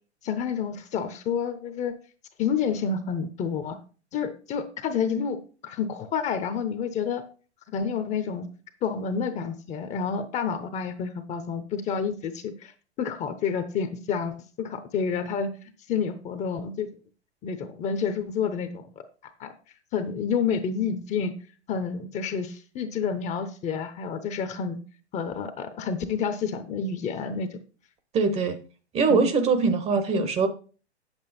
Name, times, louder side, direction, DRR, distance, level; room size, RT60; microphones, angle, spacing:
voice 1, 0.2-1.9 2.4-3.8 4.1-5.4 5.6-7.2 7.7-8.5 8.8-12.7 13.0-15.5 15.9-16.9 17.4-18.9 19.2-19.5 19.9-21.3 21.7-24.8 25.1-27.6 29.1-29.2 30.1-30.3, left 6 dB, 20° left, 9 dB, 0.8 m, -29 dB
voice 2, 28.1-28.6 28.9-30.5, right 4 dB, 20° right, 10 dB, 0.8 m, -22 dB
8.6 x 8.0 x 4.2 m, 0.37 s
hypercardioid pair, 120°, 33 cm